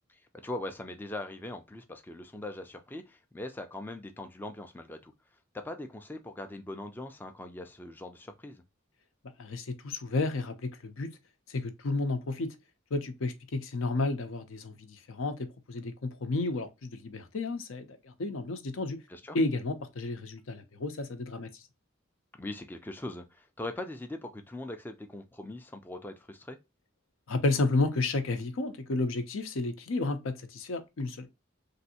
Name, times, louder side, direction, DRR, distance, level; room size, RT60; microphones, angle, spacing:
voice 1, 0.1-5.1 5.5-8.6 19.1-19.4 22.4-26.6, left 2 dB, 10° left, 0.3 m, -41 dB
voice 2, 9.4-11.1 11.5-12.5 12.9-19.0 19.3-21.5 27.3-31.3, left 3 dB, 80° left, 0.6 m, -32 dB
3.2 x 2.6 x 2.7 m
head